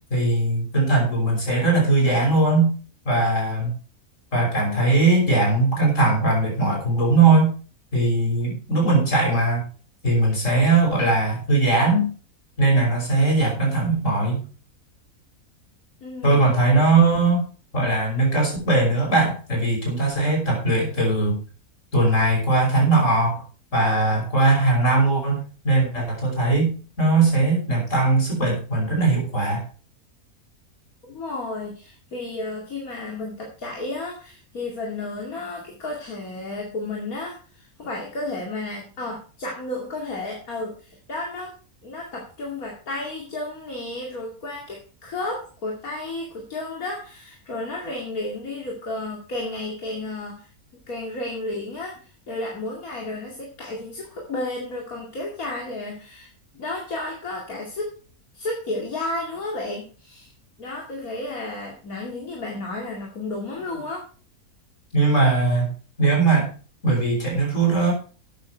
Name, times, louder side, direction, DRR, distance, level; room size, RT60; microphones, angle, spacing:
voice 1, 0.1-2.7 3.1-3.7 4.3-7.5 7.9-9.6 10.0-12.1 12.6-14.4 16.2-17.4 17.7-21.4 21.9-23.4 23.7-29.6 64.9-65.7 66.0-66.5 66.8-67.9, right 3 dB, 55° left, 0 dB, 5.9 m, -20 dB
voice 2, 16.0-16.4 31.1-41.5 41.8-50.5 50.9-57.9 58.3-60.3 60.6-64.0, left 2 dB, 75° left, -1 dB, 2.9 m, -32 dB
13.0 x 8.8 x 4.5 m, 0.38 s
omnidirectional pair, 1.5 m